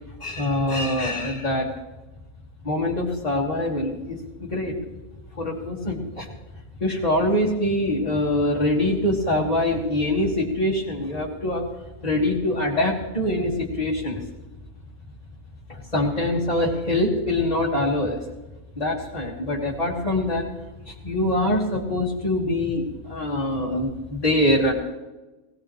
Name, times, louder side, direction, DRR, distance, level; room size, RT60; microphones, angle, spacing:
voice 1, 0.2-1.7 2.6-4.7 5.4-6.3 6.8-11.7 12.0-14.2 15.7-18.2 18.8-20.5 20.9-24.7, left 1 dB, 25° left, -5 dB, 2.0 m, -24 dB
19.0 x 18.0 x 3.2 m, 1.1 s
omnidirectional pair, 1.5 m